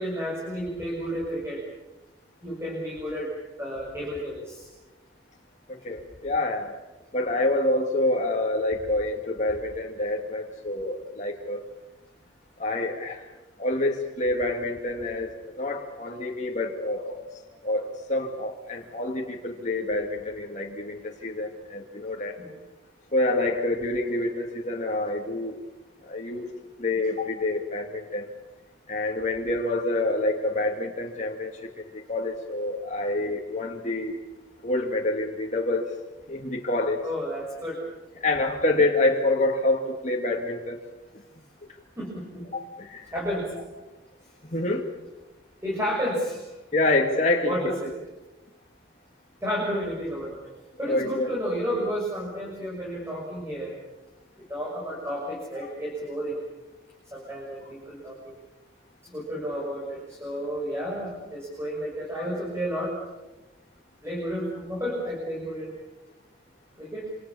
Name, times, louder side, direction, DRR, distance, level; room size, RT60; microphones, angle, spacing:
voice 1, 0.0-1.6 2.4-3.3 3.6-4.7 22.4-22.6 37.0-37.8 42.0-42.5 43.1-43.5 45.6-46.5 47.4-47.9 49.4-50.4 50.8-53.8 54.4-56.4 57.1-58.3 59.0-62.9 64.0-65.7 66.8-67.1, equal, 15° right, -3 dB, 6.6 m, -31 dB
voice 2, 5.7-6.7 7.1-11.6 12.6-13.3 13.6-17.2 17.6-22.4 23.1-25.6 26.0-26.5 26.8-28.3 28.9-34.2 34.6-35.9 36.3-37.1 38.2-40.8 42.5-43.1 44.4-44.9 46.7-47.7 50.8-51.3 55.6-55.7 62.2-62.3, left 2 dB, 40° left, 0 dB, 2.4 m, -27 dB
27.5 x 26.5 x 7.1 m, 1.1 s
head